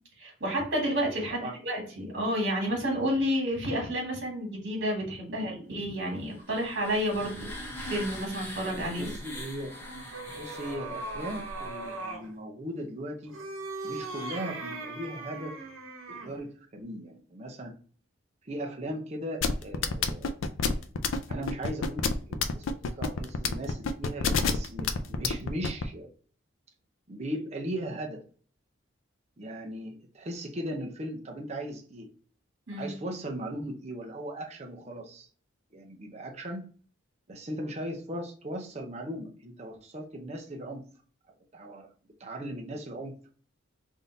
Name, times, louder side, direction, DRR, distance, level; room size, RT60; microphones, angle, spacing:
voice 1, 0.2-9.2 32.7-32.9, equal, 55° right, 0 dB, 1.8 m, -30 dB
sound 1, 6.3-12.1, left 1 dB, 10° left, 0.7 m, -42 dB
voice 2, 9.0-9.7 10.4-13.3 13.8-15.6 16.1-17.7 18.4-20.3 21.3-26.1 27.1-28.2 29.4-32.1 32.8-35.3 35.7-36.7 37.3-40.9 41.5-41.9 42.2-43.1, right 1 dB, 30° right, 1 dB, 0.6 m, -38 dB
sound 2, 9.3-12.3 13.2-16.4, right 2 dB, 80° right, 0.9 m, -39 dB
sound 3, 19.4-25.8, left 5 dB, 75° left, 0.4 m, -27 dB
3.6 x 2.7 x 3.9 m, 0.43 s
head